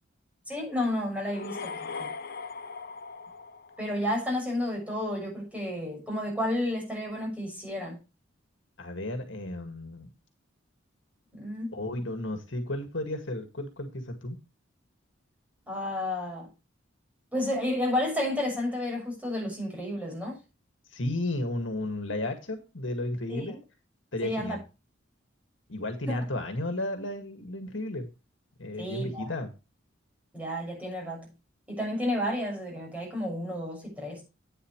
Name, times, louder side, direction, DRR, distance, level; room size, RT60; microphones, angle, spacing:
voice 1, 0.5-2.1 3.8-8.0 11.3-11.8 15.7-16.5 17.3-20.4 23.3-23.6 24.2-24.6 26.1-26.2 28.8-29.3 30.3-31.3 31.7-34.2, left 1 dB, 5° right, 6.5 m, -31 dB
sound 1, 1.2-4.2, left 5 dB, 50° left, 0.9 m, -40 dB
voice 2, 8.8-10.1 11.7-14.4 20.9-23.6 24.1-24.6 25.7-28.1 28.6-29.5, left 1 dB, 65° left, 2.1 m, -33 dB
11.0 x 9.5 x 3.2 m
head